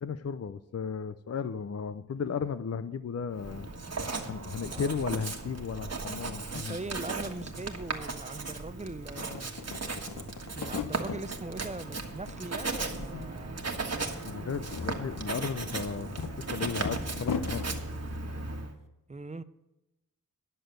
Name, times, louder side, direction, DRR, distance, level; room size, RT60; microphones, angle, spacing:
voice 1, 0.0-3.7 4.3-6.8 14.2-17.6, left 6 dB, 45° left, 13 dB, 0.5 m, -35 dB
Writing, 3.4-18.7, right 3 dB, 45° right, 1.4 m, -37 dB
voice 2, 4.6-5.1 6.5-9.5 10.5-13.6 19.1-19.4, right 2 dB, 20° right, 13 dB, 0.6 m, -41 dB
sound 1, 7.3-7.4 7.6-8.7 9.0-11.3 11.7-12.4 12.7-13.5 13.8-13.9 14.4-17.7, left 5 dB, 65° left, 0.9 m, -38 dB
11.0 x 6.7 x 7.8 m, 0.95 s
wide cardioid pair, 70°, 35 cm